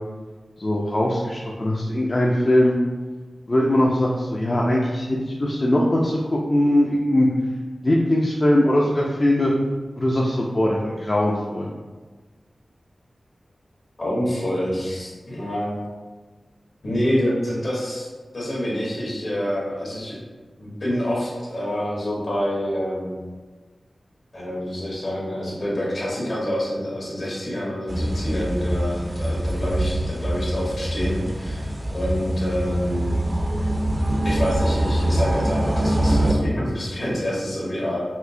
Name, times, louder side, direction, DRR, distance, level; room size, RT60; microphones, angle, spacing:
voice 1, 0.6-2.8 3.5-7.3 7.8-9.5 10.0-11.7, left 1 dB, 40° left, -3 dB, 0.4 m, -20 dB
voice 2, 14.0-15.8 16.8-18.1 18.3-20.2 20.6-23.2 24.3-33.2 34.2-38.0, equal, 65° left, -6 dB, 1.3 m, -27 dB
sound 1, 27.9-36.3, right 1 dB, 25° right, 0.4 m, -24 dB
4.3 x 2.0 x 2.6 m, 1.3 s
cardioid pair, 55°, 0 cm